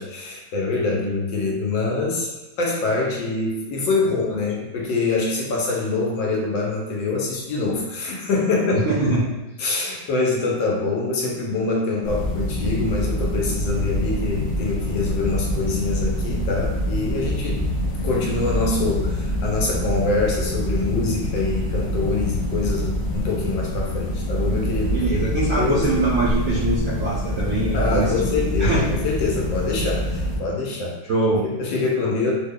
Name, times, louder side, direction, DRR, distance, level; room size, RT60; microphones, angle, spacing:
voice 1, 0.0-2.3 2.6-8.9 9.6-17.6 18.0-25.0 25.6-25.9 27.7-30.9 31.6-32.3, left 3 dB, 85° left, -2 dB, 1.5 m, -24 dB
voice 2, 8.7-9.3 9.6-9.7 24.9-28.1 28.6-28.9 31.1-31.4, right 2 dB, 65° right, -8 dB, 0.9 m, -23 dB
sound 1, 12.0-30.4, equal, 35° left, 0.6 m, -25 dB
3.5 x 2.1 x 3.6 m, 1.1 s
omnidirectional pair, 2.0 m